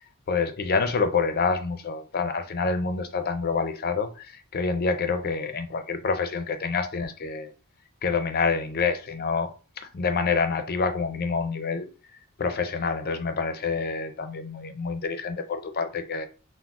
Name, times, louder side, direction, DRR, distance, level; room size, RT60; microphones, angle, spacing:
voice 1, 0.3-7.5 8.0-11.8 12.4-16.3, left 4 dB, 45° left, 0.5 m, -27 dB
5.8 x 2.0 x 2.3 m
head